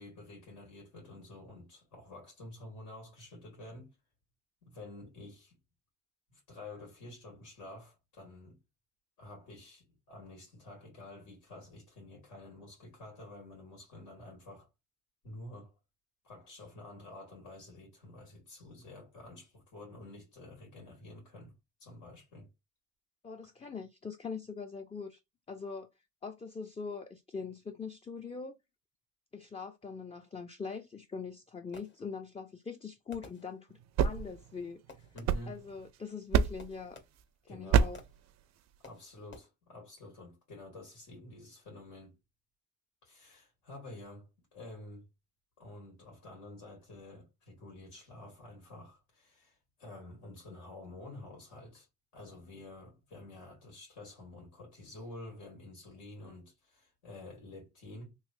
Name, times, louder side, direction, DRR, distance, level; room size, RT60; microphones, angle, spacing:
voice 1, 0.0-4.0 4.6-5.5 6.3-8.6 9.2-14.7 15.2-15.7 16.2-21.5 21.8-22.5 35.1-35.6 37.5-38.0 38.8-42.2 43.0-45.1 45.6-51.9 52.1-58.2, left 2 dB, 90° left, 2.1 m, -49 dB
voice 2, 23.2-25.2 25.5-25.9 26.2-28.5 29.3-34.8 35.5-37.0 37.5-38.0, left 5 dB, 20° left, 0.4 m, -42 dB
Fireworks, 31.2-32.4 33.1-34.0 34.9-35.6 36.6-37.5 37.9-38.4 38.8-39.4, left 3 dB, 40° left, 1.0 m, -55 dB
sound 1, 33.7-35.9 36.3-36.8 37.7-38.2, right 7 dB, 60° right, 0.4 m, -29 dB
3.2 x 3.1 x 2.6 m
cardioid pair, 90°, 30 cm